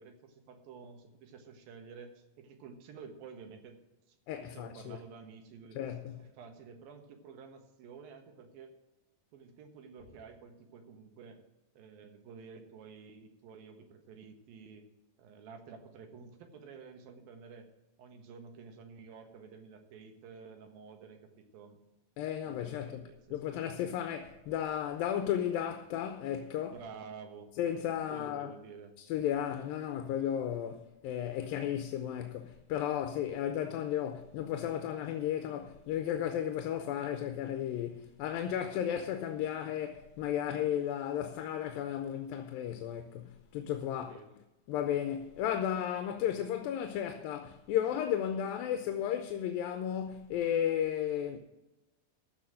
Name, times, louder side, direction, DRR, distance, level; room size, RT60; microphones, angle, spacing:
voice 1, 0.0-3.8 4.1-5.8 6.2-8.7 9.3-11.4 11.7-14.8 15.2-17.7 18.0-21.8 22.4-23.4 26.7-27.5 28.1-28.9 43.9-44.3, right 5 dB, 85° right, 3.2 m, -51 dB
voice 2, 4.3-5.0 5.8-6.2 22.2-23.0 23.3-26.8 27.6-28.5 29.1-44.2 44.7-51.4, left 10 dB, 85° left, 2.5 m, -34 dB
14.5 x 5.7 x 7.6 m
omnidirectional pair, 4.0 m